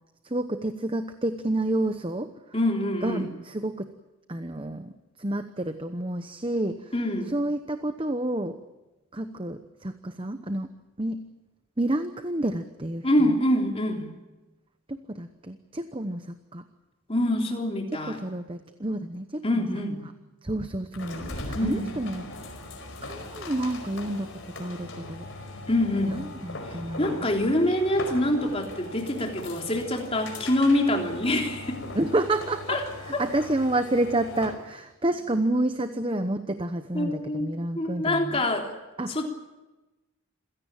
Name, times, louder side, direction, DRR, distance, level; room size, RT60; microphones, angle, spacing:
voice 1, 0.2-2.3 3.0-3.9 4.3-4.9 5.2-6.9 7.3-8.6 9.1-10.7 11.0-11.3 11.8-13.4 14.9-16.3 16.5-16.6 17.9-19.7 20.4-22.3 23.0-24.3 24.6-25.3 26.1-27.3 31.9-32.8 33.2-38.4 39.0-39.3, right 1 dB, 25° right, 9 dB, 0.9 m, -29 dB
voice 2, 2.5-3.3 6.9-7.3 13.0-14.1 17.1-18.2 19.4-20.0 21.5-21.9 25.7-26.2 27.0-31.8 32.7-32.8 33.1-33.2 36.9-38.7 39.1-39.3, left 1 dB, 25° left, 2 dB, 3.4 m, -25 dB
sound 1, 20.9-34.7, left 2 dB, 60° left, 4.9 m, -39 dB
27.5 x 17.0 x 8.9 m, 1.1 s
head